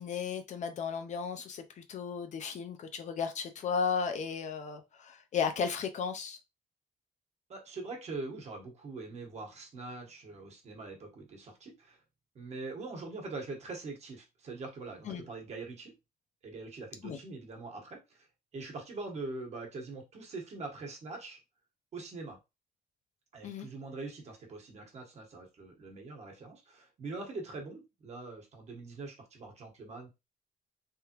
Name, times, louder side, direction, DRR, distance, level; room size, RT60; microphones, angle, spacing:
voice 1, 0.0-6.4 15.1-15.2 17.0-17.2 23.4-23.7, left 6 dB, 50° left, 0.6 m, -35 dB
voice 2, 7.5-12.0 12.3-15.9 16.4-18.3 18.5-21.4 21.9-22.4 23.3-30.1, right 3 dB, 45° right, 1.4 m, -43 dB
3.5 x 3.4 x 3.0 m
cardioid pair, 165°, 15 cm